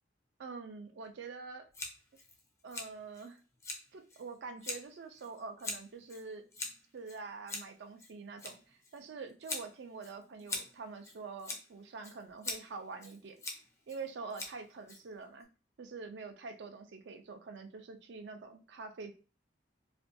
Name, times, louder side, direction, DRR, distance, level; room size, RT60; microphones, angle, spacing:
voice 1, 0.4-1.7 2.6-3.4 3.9-6.4 6.9-13.4 13.9-15.5 15.8-19.2, right 4 dB, 70° right, 7 dB, 0.4 m, -45 dB
Scissors, 1.7-15.4, left 2 dB, 15° left, 0.5 m, -45 dB
2.5 x 2.2 x 2.5 m, 0.35 s
head